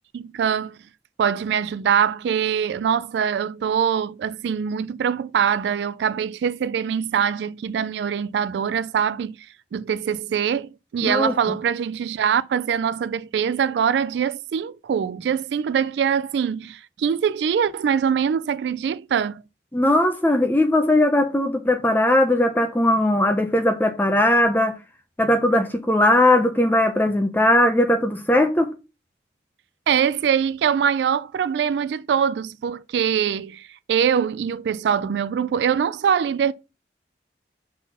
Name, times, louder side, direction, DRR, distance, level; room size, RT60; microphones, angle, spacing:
voice 1, 0.1-0.8 1.2-9.4 9.7-19.4 29.9-36.5, right 7 dB, 80° right, 0.3 m, -23 dB
voice 2, 11.0-11.6 19.7-24.7 25.2-28.7, left 1 dB, 10° left, 0.7 m, -19 dB
5.9 x 4.1 x 5.9 m
head